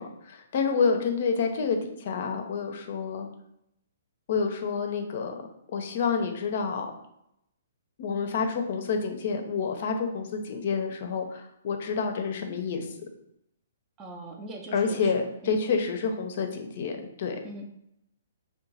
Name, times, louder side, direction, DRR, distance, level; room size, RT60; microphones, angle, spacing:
voice 1, 0.0-3.3 4.3-5.3 5.7-6.9 8.0-12.9 14.7-17.4, left 5 dB, 55° left, 5 dB, 0.5 m, -28 dB
voice 2, 14.0-15.1 15.4-15.6 17.4-17.6, right 2 dB, 25° right, 1 dB, 0.5 m, -41 dB
2.9 x 2.2 x 3.9 m, 0.78 s
hypercardioid pair, 130°, 0 cm